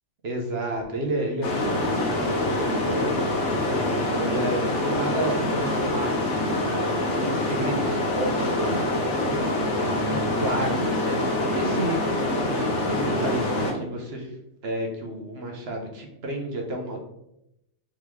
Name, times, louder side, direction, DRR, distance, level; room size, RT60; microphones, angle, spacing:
voice 1, 0.2-6.2 6.8-9.4 10.1-14.3 14.6-17.0, right 1 dB, 55° right, 1 dB, 0.9 m, -31 dB
sound 1, 1.4-13.7, left 1 dB, 60° left, 1.1 m, -25 dB
3.9 x 3.5 x 3.1 m, 0.84 s
omnidirectional pair, 1.4 m